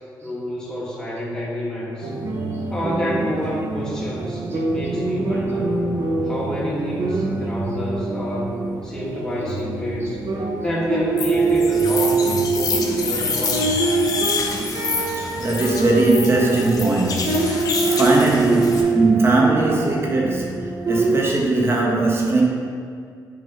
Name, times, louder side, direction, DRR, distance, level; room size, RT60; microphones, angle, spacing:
voice 1, 0.2-2.1 2.7-5.8 6.2-10.2 10.6-13.6, equal, 10° left, -6 dB, 1.9 m, -28 dB
sound 1, 2.0-21.2, right 3 dB, 60° right, 1.0 m, -24 dB
sound 2, 11.2-18.8, left 4 dB, 55° left, 1.0 m, -27 dB
voice 2, 15.0-22.4, right 2 dB, 35° right, -2 dB, 1.5 m, -20 dB
8.7 x 3.3 x 5.6 m, 2.2 s
cardioid pair, 90°, 8 cm